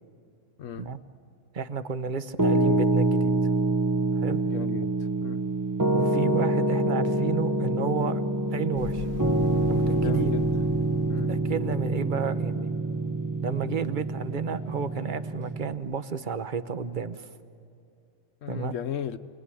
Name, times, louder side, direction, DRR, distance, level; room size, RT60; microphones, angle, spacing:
voice 1, 1.5-3.3 4.1-4.4 5.9-8.2 8.5-9.1 9.7-10.4 11.3-12.7 13.4-17.3 18.5-18.8, right 6 dB, 45° right, 1.0 m, -31 dB
Piano, 2.4-15.7, right 2 dB, 20° right, 0.7 m, -26 dB
voice 2, 4.5-5.4 9.8-10.5 11.1-11.3 18.4-19.2, left 9 dB, 80° left, 1.2 m, -36 dB
sound 1, 8.8-12.2, left 9 dB, 60° left, 1.0 m, -40 dB
28.5 x 19.0 x 9.9 m
omnidirectional pair, 1.3 m